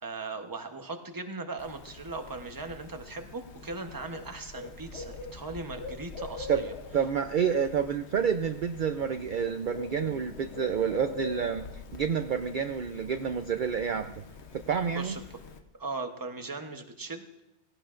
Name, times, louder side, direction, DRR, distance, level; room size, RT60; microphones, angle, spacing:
voice 1, 0.0-6.7 14.9-15.2 15.8-17.3, right 3 dB, 20° right, 5 dB, 0.9 m, -38 dB
Bird, 1.6-15.6, left 3 dB, 75° left, 1.2 m, -44 dB
voice 2, 6.9-14.1 14.5-15.2, right 7 dB, 55° right, 8 dB, 0.7 m, -29 dB
17.5 x 17.0 x 2.5 m, 0.90 s
omnidirectional pair, 1.1 m